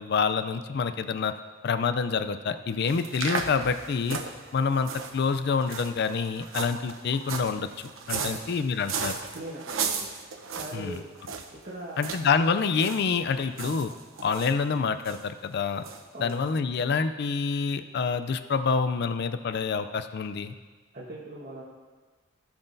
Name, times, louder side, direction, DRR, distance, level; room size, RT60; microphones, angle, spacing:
voice 1, 0.0-1.3 1.6-4.2 4.5-9.2 10.7-11.0 12.0-13.9 14.2-15.8 16.2-20.5, left 5 dB, 55° left, 10 dB, 0.4 m, -27 dB
sound 1, 2.9-11.6 12.0-12.3 12.5-13.0 13.3-14.5 15.0-15.2 15.8-16.0 16.3-16.4, right 5 dB, 90° right, 0.8 m, -35 dB
voice 2, 9.3-10.1 10.5-11.0 11.5-12.1 16.1-16.4 20.9-21.6, right 1 dB, 45° right, -7 dB, 1.4 m, -40 dB
17.0 x 5.9 x 2.6 m, 1.4 s
head